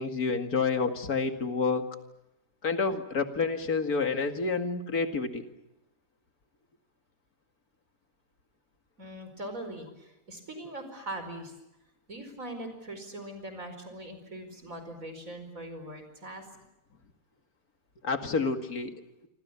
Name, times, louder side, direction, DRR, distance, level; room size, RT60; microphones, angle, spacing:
voice 1, 0.0-1.9 2.6-5.4 18.0-19.0, left 4 dB, 65° left, 7 dB, 2.6 m, -29 dB
voice 2, 9.0-11.5 12.1-16.5, right 1 dB, 55° right, 7 dB, 5.3 m, -41 dB
28.5 x 25.5 x 7.2 m, 0.93 s
omnidirectional pair, 1.7 m